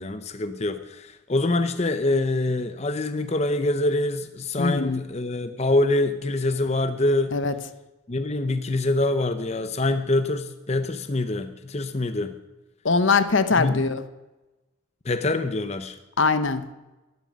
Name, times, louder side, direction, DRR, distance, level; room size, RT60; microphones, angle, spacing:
voice 1, 0.0-7.4 8.1-12.4 13.6-13.8 15.0-16.0, left 2 dB, 30° left, 9 dB, 0.7 m, -25 dB
voice 2, 4.6-5.0 7.3-7.5 12.8-14.0 16.2-16.7, left 4 dB, 65° left, 12 dB, 0.9 m, -22 dB
13.0 x 12.0 x 6.3 m, 1.1 s
head